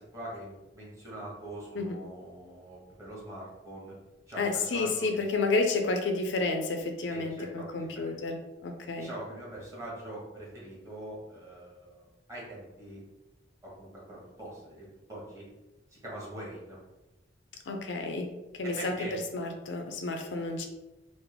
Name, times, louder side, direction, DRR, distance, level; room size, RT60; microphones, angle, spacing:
voice 1, 0.0-3.9 4.2-5.2 7.1-8.1 9.0-13.0 13.6-15.5 16.0-16.8 18.6-19.2, right 1 dB, 20° right, -6 dB, 1.3 m, -43 dB
voice 2, 4.4-9.1 17.7-18.3 18.5-18.9 19.3-20.7, left 3 dB, 85° left, 5 dB, 0.5 m, -30 dB
3.6 x 2.0 x 3.3 m, 1.0 s
head